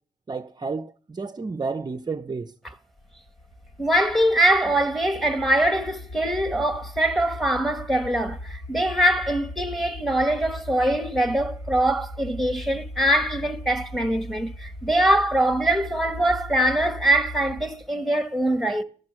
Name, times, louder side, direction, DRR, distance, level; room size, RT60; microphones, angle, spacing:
voice 1, 0.3-2.5, right 4 dB, 25° right, 0.7 m, -31 dB
sound 1, 3.0-17.9, left 1 dB, 50° left, 2.6 m, -39 dB
voice 2, 3.8-18.8, right 1 dB, ahead, 1.5 m, -23 dB
14.0 x 12.5 x 7.5 m
cardioid pair, 115°, 16 cm